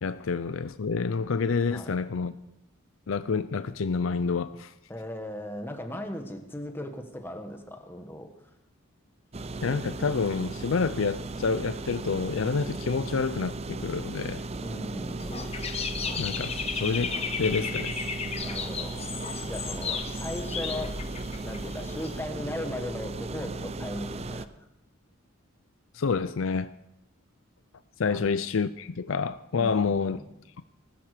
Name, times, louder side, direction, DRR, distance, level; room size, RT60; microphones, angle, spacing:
voice 1, 0.0-2.3 3.1-4.7 9.6-14.4 16.2-18.0 25.9-26.7 28.0-30.2, left 5 dB, 80° left, 0.5 m, -28 dB
voice 2, 4.9-8.3 14.6-15.5 18.4-19.1 19.4-21.0 21.4-24.7 28.0-28.3 29.6-30.3, left 1 dB, 10° left, 1.5 m, -38 dB
sound 1, 9.3-24.5, right 3 dB, 30° right, 0.6 m, -36 dB
Dog / Bird, 15.2-22.2, left 5 dB, 30° left, 1.1 m, -34 dB
19.5 x 13.0 x 5.0 m
head